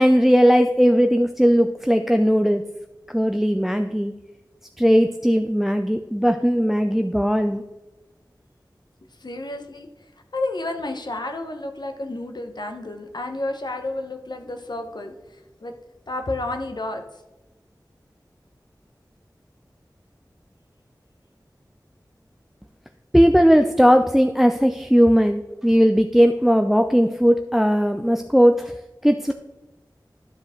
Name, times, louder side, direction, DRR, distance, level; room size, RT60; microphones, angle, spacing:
voice 1, 0.0-2.6 3.1-4.1 4.8-7.6 23.1-28.7 29.0-29.3, equal, 5° right, 7 dB, 0.4 m, -18 dB
voice 2, 9.2-9.9 10.3-15.7 16.1-17.0, left 2 dB, 65° left, 5 dB, 1.0 m, -31 dB
11.5 x 5.0 x 3.7 m, 1.1 s
wide cardioid pair, 45°, 8 cm